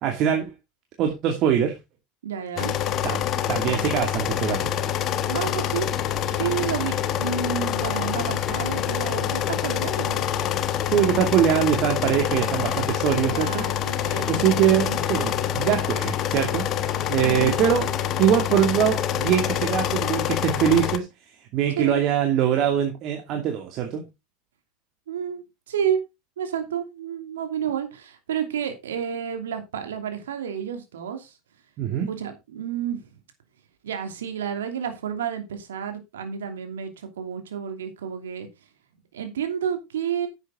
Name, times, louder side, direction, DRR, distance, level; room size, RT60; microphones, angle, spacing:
voice 1, 0.0-0.5 1.0-1.7 3.0-4.7 10.9-13.6 14.0-16.7 17.1-17.9 18.2-21.1 21.5-24.0 31.8-32.1, right 9 dB, 50° right, 3 dB, 2.4 m, -23 dB
voice 2, 2.2-2.7 5.3-5.9 6.3-10.2 13.3-15.0 17.2-17.6 21.8-22.0 25.1-26.0 26.4-31.3 32.1-33.0 33.8-38.5 39.1-40.3, right 8 dB, 80° right, 6 dB, 2.8 m, -30 dB
sound 1, 2.6-21.0, left 10 dB, 45° left, 1.3 m, -26 dB
10.5 x 8.1 x 3.8 m, 0.23 s
hypercardioid pair, 80°, 0 cm